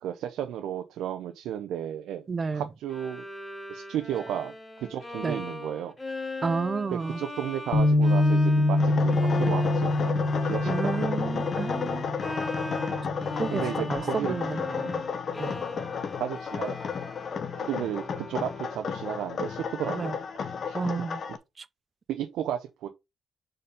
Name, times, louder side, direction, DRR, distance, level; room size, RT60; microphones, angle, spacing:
voice 1, 0.0-2.2 2.5-3.2 3.7-5.9 6.9-10.1 10.4-11.5 13.5-14.3 14.8-15.0 16.2-16.8 17.6-20.8 22.1-22.9, right 10 dB, 85° right, 0.7 m, -34 dB
voice 2, 2.3-2.7 5.2-5.4 6.4-7.2 10.7-12.0 13.4-13.6 13.9-15.0 15.4-15.9 19.9-20.1 20.7-21.2 21.6-21.7, right 4 dB, 35° right, 0.5 m, -31 dB
Bowed string instrument, 2.9-19.0, left 2 dB, 20° left, 1.1 m, -40 dB
Bass guitar, 7.7-14.0, left 2 dB, 85° left, 1.7 m, -26 dB
sound 1, 8.8-21.4, left 6 dB, 55° left, 0.8 m, -33 dB
5.1 x 4.3 x 5.2 m
cardioid pair, 90°, 0 cm